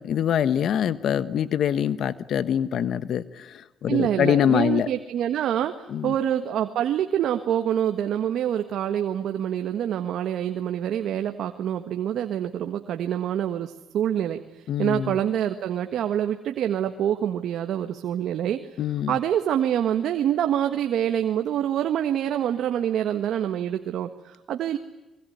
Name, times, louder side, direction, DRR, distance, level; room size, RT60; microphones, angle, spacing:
voice 1, 0.0-4.9 5.9-6.1 14.7-15.2 18.8-19.2, left 9 dB, 70° left, 15 dB, 1.1 m, -24 dB
voice 2, 3.9-18.8 19.1-24.8, right 10 dB, 75° right, 7 dB, 1.5 m, -26 dB
26.0 x 22.5 x 9.4 m, 1.0 s
cardioid pair, 90°, 0 cm